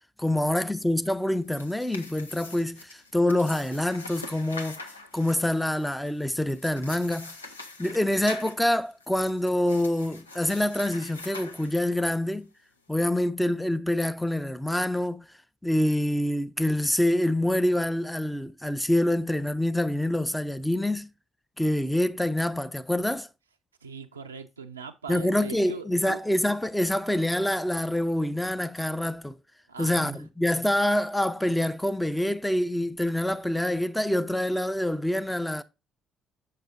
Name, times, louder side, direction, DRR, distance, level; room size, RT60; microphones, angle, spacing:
voice 1, 0.2-4.8 5.1-7.4 7.8-12.5 12.9-15.3 15.6-21.1 21.6-23.3 25.1-29.3 29.8-35.6, left 1 dB, 5° left, 0.6 m, -26 dB
sound 1, 1.3-12.2, left 3 dB, 85° left, 0.6 m, -44 dB
voice 2, 23.8-26.2 29.7-30.2, right 4 dB, 85° right, 0.4 m, -41 dB
7.8 x 6.6 x 2.6 m
figure-of-eight pair, 50°, 0 cm